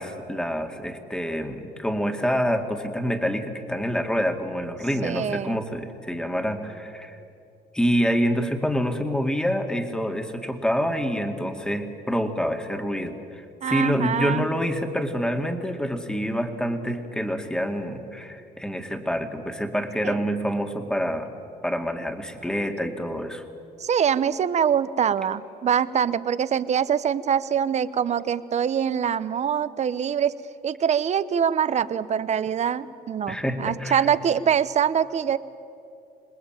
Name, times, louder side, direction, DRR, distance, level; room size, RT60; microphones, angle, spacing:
voice 1, 0.0-7.2 7.7-21.3 21.6-23.4 33.3-34.1, equal, 5° left, 5 dB, 2.2 m, -27 dB
voice 2, 5.0-5.6 13.6-14.5 20.0-20.2 23.8-30.3 30.6-35.4, right 8 dB, 40° right, 15 dB, 0.9 m, -24 dB
26.5 x 20.0 x 9.1 m, 2.6 s
cardioid pair, 110°, 17 cm